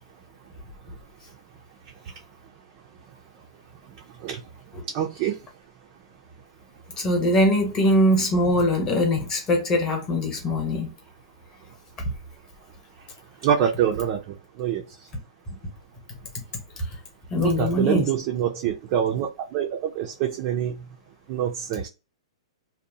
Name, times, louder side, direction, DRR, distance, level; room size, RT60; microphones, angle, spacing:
voice 1, 4.9-5.4 13.4-14.2 14.6-14.8 17.4-20.8 21.3-21.9, right 9 dB, 35° right, 0.3 m, -25 dB
voice 2, 7.0-10.9 17.3-18.0, left 1 dB, 20° left, 0.9 m, -22 dB
2.7 x 2.0 x 2.6 m
hypercardioid pair, 150°, 3 cm